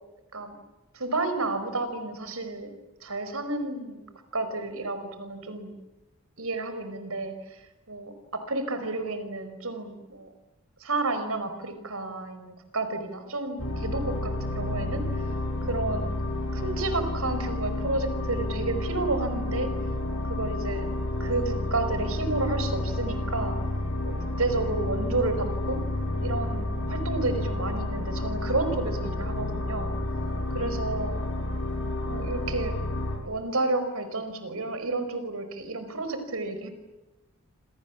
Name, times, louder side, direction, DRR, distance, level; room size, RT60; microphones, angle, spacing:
voice 1, 0.9-2.7 3.0-5.7 6.4-7.6 7.9-10.3 10.8-15.0 15.6-16.1 16.5-19.7 20.3-20.9 21.2-23.6 24.0-25.8 26.2-29.9 30.5-31.2 32.0-32.8 33.2-36.7, right 3 dB, 70° right, 9 dB, 5.0 m, -31 dB
sound 1, 13.6-33.2, left 1 dB, 70° left, 6.8 m, -30 dB
28.5 x 27.0 x 7.3 m, 1.0 s
head